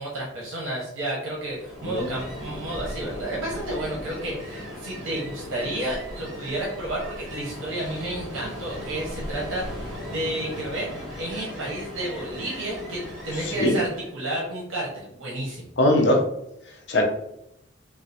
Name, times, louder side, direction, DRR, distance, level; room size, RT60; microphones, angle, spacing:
voice 1, 0.0-10.9 11.2-13.9 14.1-15.7, right 1 dB, 75° right, -4 dB, 0.7 m, -31 dB
Ocean, 1.4-14.1, equal, ahead, 1.3 m, -37 dB
voice 2, 1.8-2.1 13.4-13.8 15.8-16.2 16.9-17.0, left 1 dB, 60° left, 2 dB, 0.5 m, -21 dB
3.1 x 2.3 x 2.7 m, 0.79 s
head